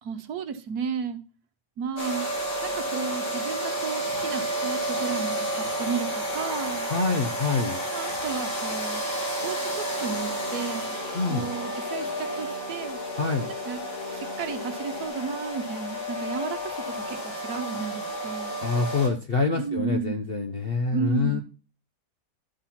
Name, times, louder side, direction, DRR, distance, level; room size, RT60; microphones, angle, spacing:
voice 1, 0.0-1.2 1.8-2.3 2.6-6.9 7.9-11.0 11.3-13.0 13.4-13.8 14.1-18.5 19.6-20.3 20.9-21.4, right 6 dB, 65° right, 8 dB, 1.4 m, -33 dB
sound 1, 2.0-19.1, equal, 85° left, 3.3 m, -31 dB
voice 2, 6.9-7.8 11.1-11.5 13.2-13.5 18.6-21.4, left 4 dB, 50° left, 5 dB, 0.7 m, -26 dB
sound 2, 9.4-15.1, left 3 dB, 25° left, 1.4 m, -42 dB
11.5 x 4.4 x 5.7 m, 0.35 s
omnidirectional pair, 1.9 m